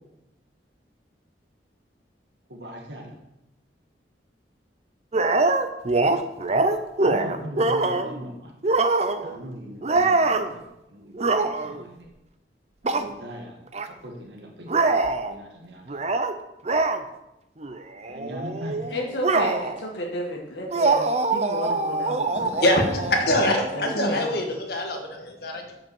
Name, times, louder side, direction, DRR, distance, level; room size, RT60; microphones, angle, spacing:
voice 1, 2.5-3.2 7.0-8.5 9.2-12.1 12.8-13.6 13.8-14.8 15.3-16.0 18.0-18.8, equal, 70° right, 0 dB, 1.7 m, -39 dB
sound 1, 5.1-8.2 8.6-9.4 9.8-10.5 11.1-11.8 12.8-13.1 13.7-13.9 14.7-15.3 15.9-16.3 16.7-17.0 17.6-17.8 18.0-19.9 20.7-24.1, right 3 dB, 35° right, 0.6 m, -24 dB
voice 2, 18.9-22.6 22.9-24.4, equal, 80° left, -1 dB, 1.7 m, -33 dB
voice 3, 22.3-25.7, left 1 dB, 60° left, 2 dB, 1.8 m, -24 dB
8.0 x 5.8 x 7.1 m, 0.90 s
head